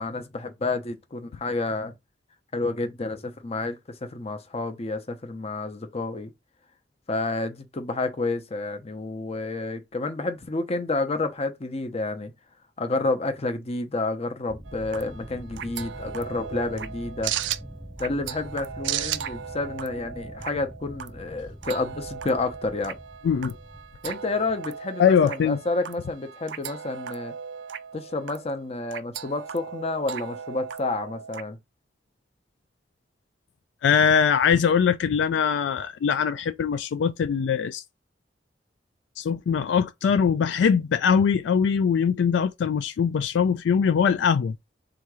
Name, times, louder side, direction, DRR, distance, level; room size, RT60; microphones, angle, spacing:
voice 1, 0.0-1.9 2.5-6.3 7.1-12.3 12.8-17.3 18.0-23.0 24.0-27.3 27.9-31.6, left 2 dB, 35° left, 0.7 m, -30 dB
sound 1, 14.5-24.6, equal, ahead, 0.4 m, -44 dB
sound 2, 14.7-31.4, right 9 dB, 75° right, 0.4 m, -37 dB
voice 2, 23.2-23.6 25.0-25.6 33.8-37.8 39.2-44.6, left 7 dB, 75° left, 0.3 m, -22 dB
3.7 x 2.8 x 4.7 m
head